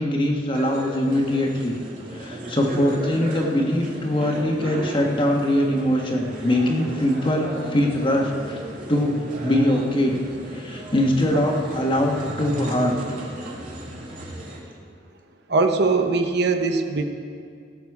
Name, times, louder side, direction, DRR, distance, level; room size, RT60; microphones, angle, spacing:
voice 1, 0.0-1.8 2.1-8.6 8.9-10.2 10.5-13.0, left 1 dB, 30° left, 0 dB, 1.4 m, -22 dB
sound 1, 0.5-14.6, right 1 dB, 50° right, 2.3 m, -34 dB
voice 2, 15.5-17.0, right 3 dB, 65° right, 6 dB, 0.8 m, -21 dB
18.0 x 7.2 x 4.8 m, 2.2 s
head